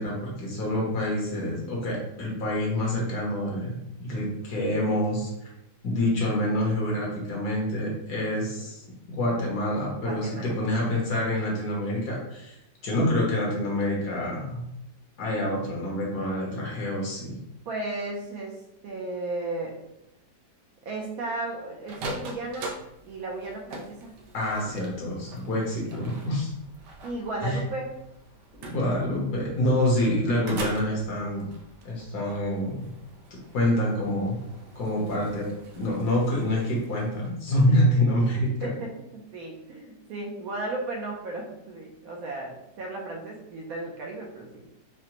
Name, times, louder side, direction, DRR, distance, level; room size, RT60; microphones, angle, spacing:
voice 1, 0.0-5.3 5.8-8.8 9.1-12.5 12.8-14.6 15.2-17.4 24.3-26.5 27.4-27.6 28.7-31.5 31.8-32.9 33.5-34.4 34.7-35.4 35.7-38.7, left 1 dB, 70° left, -3 dB, 1.6 m, -26 dB
voice 2, 10.0-10.5 17.7-19.7 20.8-22.7 23.0-24.1 27.0-27.9 34.9-35.1 38.6-44.6, right 2 dB, 65° right, -1 dB, 1.1 m, -35 dB
sound 1, 21.8-37.3, right 1 dB, 85° right, 1.3 m, -43 dB
4.9 x 2.1 x 2.9 m, 0.84 s
omnidirectional pair, 1.8 m